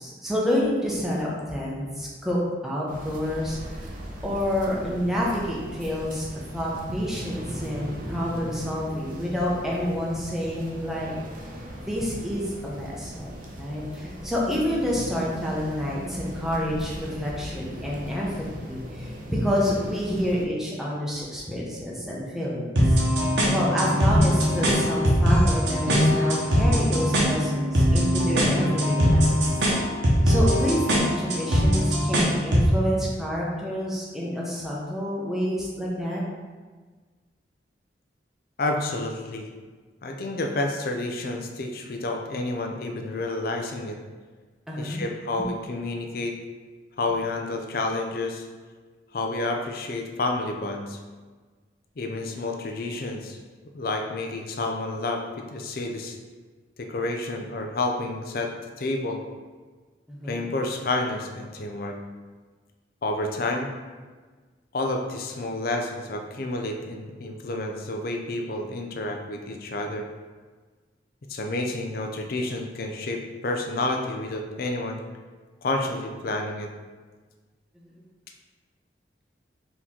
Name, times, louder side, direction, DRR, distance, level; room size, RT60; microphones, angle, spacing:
voice 1, 0.0-2.4 2.6-3.9 4.2-6.3 6.5-11.1 11.8-18.3 18.6-23.0 23.5-29.4 30.2-36.2 44.7-45.0 60.1-60.4, equal, ahead, -5 dB, 0.7 m, -28 dB
sound 1, 2.9-20.5, equal, 45° right, 0.6 m, -38 dB
sound 2, 22.8-32.7, equal, 75° right, 0.9 m, -21 dB
voice 2, 38.6-39.5 40.0-44.0 44.8-46.4 47.0-48.4 49.1-51.0 52.0-53.4 53.7-56.2 56.8-59.2 60.3-62.0 63.0-63.7 64.7-70.1 71.3-75.0 75.6-76.7, left 2 dB, 55° left, 3 dB, 0.5 m, -29 dB
4.3 x 2.9 x 3.6 m, 1.4 s
head